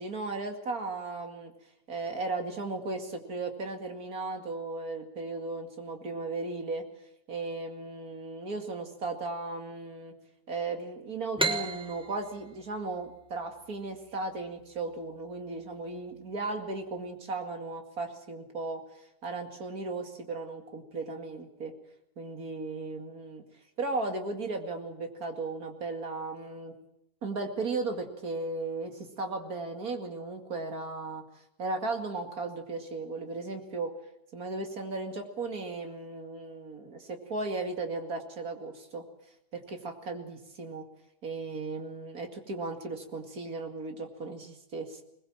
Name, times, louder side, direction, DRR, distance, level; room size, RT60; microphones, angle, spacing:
voice 1, 0.0-1.5 1.9-6.9 7.3-10.1 10.5-18.8 19.2-21.7 22.2-23.4 23.8-26.7 27.2-31.2 31.6-33.9 34.3-39.0 39.5-40.9 41.2-45.0, right 3 dB, 80° right, 4 dB, 2.8 m, -36 dB
sound 1, 11.4-14.8, right 2 dB, 5° right, 1.1 m, -34 dB
21.5 x 20.0 x 7.3 m, 0.78 s
omnidirectional pair, 1.5 m